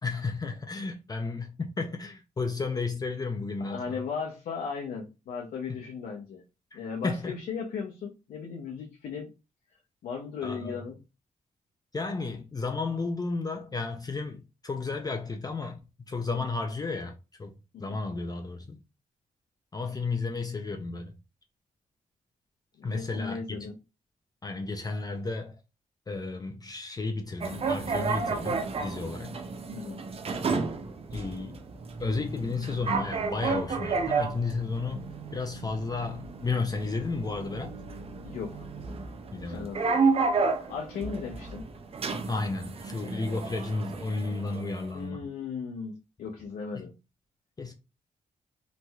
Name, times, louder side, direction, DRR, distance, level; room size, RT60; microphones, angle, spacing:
voice 1, 0.0-4.0 6.7-6.8 7.0-7.3 10.4-10.8 11.9-15.8 16.1-17.5 17.8-18.8 19.7-21.1 22.8-23.7 24.4-25.5 26.1-29.4 31.1-31.6 32.0-37.7 39.3-39.7 42.3-45.3 46.7-46.8 47.6-47.7, left 3 dB, 25° left, 0.4 m, -33 dB
voice 2, 3.6-6.4 6.7-9.3 10.0-11.0 17.7-18.0 22.8-23.7 29.7-30.0 38.2-38.7 39.4-40.1 40.7-41.6 44.9-47.0, left 5 dB, 85° left, 0.6 m, -37 dB
sound 1, 27.4-44.9, right 4 dB, 45° right, 0.4 m, -32 dB
3.0 x 2.7 x 2.3 m
cardioid pair, 80°, 14 cm